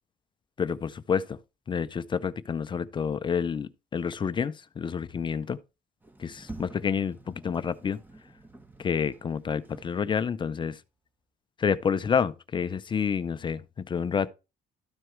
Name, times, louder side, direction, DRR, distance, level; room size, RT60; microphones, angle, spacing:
voice 1, 0.6-1.4 1.7-5.6 6.2-8.0 8.8-10.8 11.6-14.3, left 6 dB, 30° left, 0.4 m, -29 dB
Sliding door, 6.0-10.5, right 2 dB, 10° right, 1.0 m, -48 dB
13.0 x 4.6 x 3.1 m
cardioid pair, 110°, 17 cm